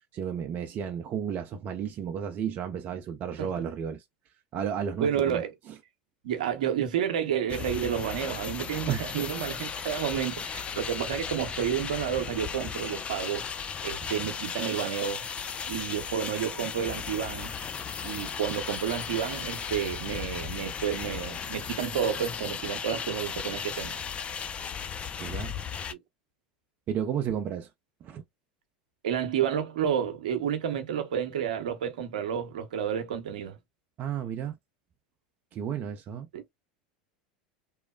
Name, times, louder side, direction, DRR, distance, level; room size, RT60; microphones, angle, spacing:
voice 1, 0.1-4.0 4.5-5.4 8.9-9.1 25.2-25.5 26.9-27.7 28.0-28.2 34.0-34.6 35.5-36.3, right 8 dB, 40° right, 0.5 m, -32 dB
voice 2, 5.0-5.5 6.2-13.4 13.8-15.3 15.7-17.6 18.0-24.0 25.9-26.0 29.0-33.6 36.3-36.4, right 9 dB, 75° right, 0.8 m, -30 dB
sound 1, 7.5-25.9, left 7 dB, 25° left, 0.5 m, -36 dB
3.1 x 2.1 x 2.2 m
hypercardioid pair, 90°, 4 cm